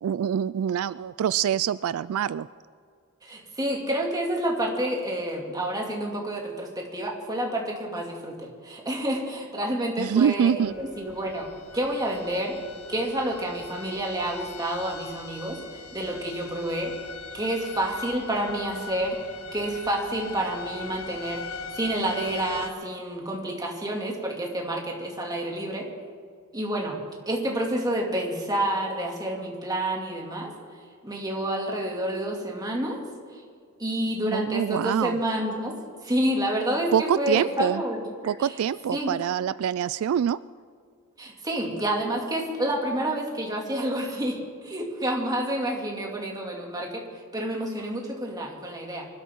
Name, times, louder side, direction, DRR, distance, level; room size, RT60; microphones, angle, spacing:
voice 1, 0.0-2.5 10.0-10.7 34.3-35.2 36.9-37.8 38.2-40.4, right 8 dB, 75° right, 18 dB, 0.3 m, -25 dB
voice 2, 3.2-11.5 11.7-12.6 12.9-15.6 15.9-16.9 17.3-19.2 19.5-21.4 21.7-25.9 26.5-27.0 27.3-30.5 31.0-33.0 33.3-33.4 33.8-35.7 36.0-38.6 38.9-39.1 41.2-49.1, right 1 dB, 20° right, -1 dB, 2.4 m, -29 dB
sound 1, 10.6-22.7, left 4 dB, 80° left, 0.9 m, -41 dB
24.5 x 12.5 x 3.7 m, 2.1 s
head